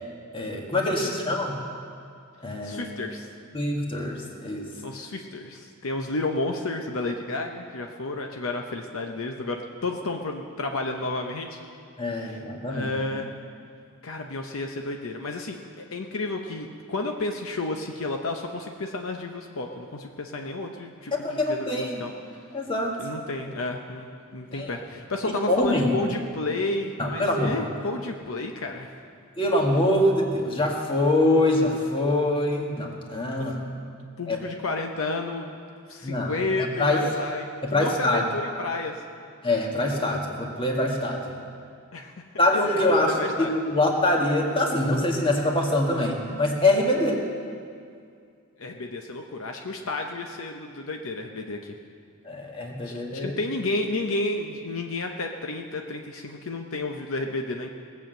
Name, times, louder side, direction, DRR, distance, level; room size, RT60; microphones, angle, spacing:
voice 1, 0.3-1.6 2.4-2.9 3.5-4.7 12.0-12.9 21.1-22.0 22.5-23.0 24.5-24.7 25.5-25.9 27.0-27.5 29.4-33.6 34.3-34.4 36.0-36.3 36.8-37.0 37.7-38.2 39.4-41.3 42.4-47.2 52.2-53.3, left 1 dB, 25° left, 0 dB, 1.7 m, -24 dB
voice 2, 0.9-1.3 2.6-3.3 4.8-11.6 12.1-12.4 12.7-13.3 14.0-22.1 23.0-24.1 24.3-28.9 33.4-33.5 34.2-35.6 35.9-37.4 37.7-39.0 41.9-42.1 42.6-43.5 48.6-51.7 52.8-57.7, left 2 dB, 65° left, 3 dB, 0.8 m, -31 dB
19.5 x 7.2 x 7.7 m, 2.3 s
head